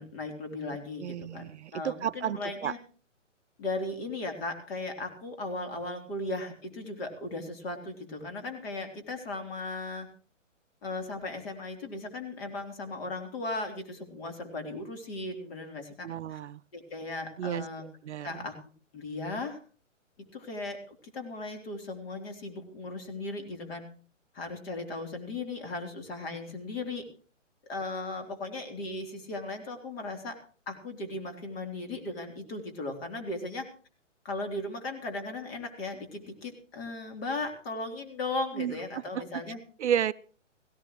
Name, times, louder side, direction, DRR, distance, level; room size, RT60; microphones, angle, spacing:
voice 1, 0.0-2.8 3.6-10.1 10.8-16.4 16.7-17.8 18.2-18.5 18.9-19.6 20.3-23.9 24.3-27.0 27.7-30.4 30.7-33.7 34.3-39.6, left 2 dB, 50° left, 4 dB, 3.7 m, -37 dB
voice 2, 1.0-2.7 16.0-16.6 17.4-18.4 38.6-38.7 39.1-39.2 39.8-40.1, right 9 dB, 65° right, 17 dB, 0.5 m, -32 dB
17.0 x 16.5 x 3.1 m, 0.41 s
hypercardioid pair, 140°, 38 cm